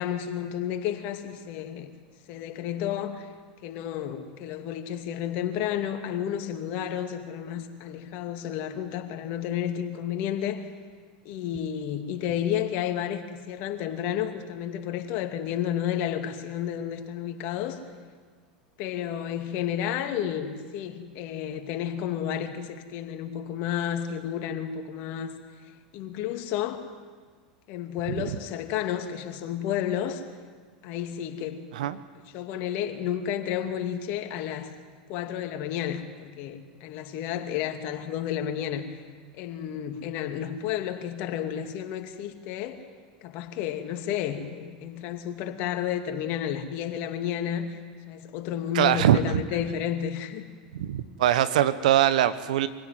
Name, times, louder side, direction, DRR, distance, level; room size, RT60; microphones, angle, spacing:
voice 1, 0.0-1.9 2.3-3.3 3.6-10.7 11.2-17.8 18.8-25.3 25.9-26.8 27.7-30.2 30.8-31.9 32.3-34.7 35.1-39.0 39.3-42.8 43.2-47.8 48.1-50.5, left 10 dB, 55° left, 6 dB, 2.5 m, -31 dB
voice 2, 48.7-49.4 50.7-52.7, right 11 dB, 70° right, 13 dB, 1.3 m, -22 dB
24.0 x 16.0 x 9.4 m, 1.5 s
hypercardioid pair, 95°, 4 cm